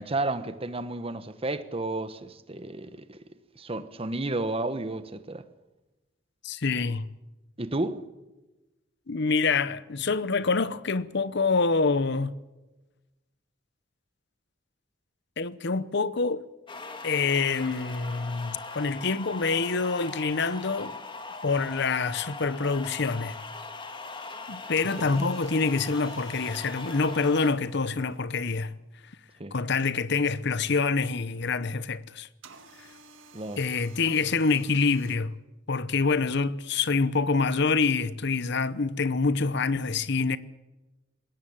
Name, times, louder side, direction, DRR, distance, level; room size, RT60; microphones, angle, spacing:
voice 1, 0.0-3.2 3.6-5.4 7.6-8.0 25.0-25.2 29.4-29.5 33.3-33.6, right 2 dB, 30° right, 1.2 m, -32 dB
voice 2, 6.4-7.1 9.1-12.3 15.4-16.4 17.0-21.0 21.4-23.4 24.5-28.7 29.5-32.3 33.6-35.3 35.7-40.4, left 4 dB, 60° left, 0.9 m, -26 dB
sound 1, 16.7-27.5, left 3 dB, 25° left, 2.0 m, -40 dB
sound 2, 24.8-28.7 32.4-35.2, right 4 dB, 75° right, 2.1 m, -52 dB
20.5 x 17.5 x 8.8 m
head